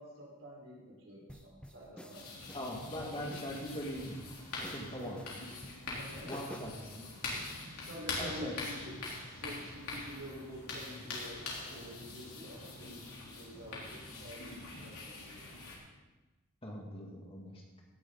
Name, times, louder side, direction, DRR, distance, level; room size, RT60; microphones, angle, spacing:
voice 1, 0.0-2.4 5.0-5.2 5.9-6.9 7.3-15.4, equal, 60° right, -4 dB, 4.3 m, -49 dB
sound 1, 1.3-6.9, equal, 5° left, 0.5 m, -51 dB
sound 2, 2.1-15.8, left 3 dB, 90° left, 3.5 m, -44 dB
voice 2, 2.5-4.3 4.6-5.2 6.2-7.1 8.1-9.0 16.6-17.6, equal, 25° left, -1 dB, 1.9 m, -41 dB
17.0 x 10.0 x 3.9 m, 1.2 s
head